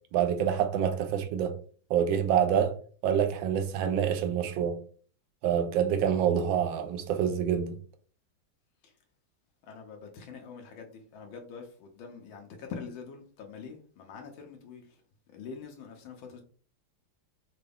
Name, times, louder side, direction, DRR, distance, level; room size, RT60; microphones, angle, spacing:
voice 1, 0.1-1.6 1.9-2.7 3.0-4.8 5.4-7.8, right 8 dB, 80° right, 1.4 m, -26 dB
voice 2, 9.6-15.0 15.3-16.4, left 5 dB, 85° left, 1.5 m, -44 dB
5.8 x 2.3 x 3.4 m
omnidirectional pair, 2.2 m